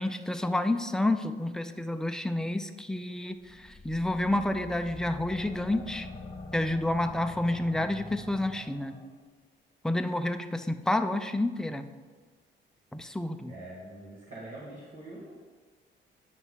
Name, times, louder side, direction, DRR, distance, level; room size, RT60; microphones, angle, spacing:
voice 1, 0.0-6.1 6.5-9.0 9.8-11.9 12.9-13.5, left 1 dB, 5° left, 7 dB, 0.5 m, -29 dB
sound 1, 3.4-9.1, left 3 dB, 20° left, 2.0 m, -45 dB
voice 2, 13.5-15.3, right 1 dB, 35° right, -7 dB, 2.1 m, -44 dB
9.3 x 5.9 x 3.7 m, 1.4 s
cardioid pair, 90°, 20 cm